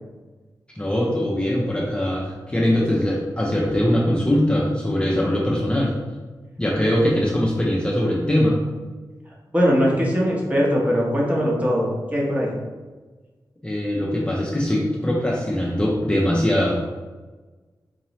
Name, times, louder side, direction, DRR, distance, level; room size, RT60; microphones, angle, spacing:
voice 1, 0.7-5.9 6.6-8.6 13.6-16.8, left 1 dB, 15° left, -4 dB, 0.5 m, -21 dB
voice 2, 9.5-12.6, equal, 20° right, -3 dB, 0.9 m, -21 dB
3.8 x 2.9 x 3.0 m, 1.3 s
wide cardioid pair, 110°, 8 cm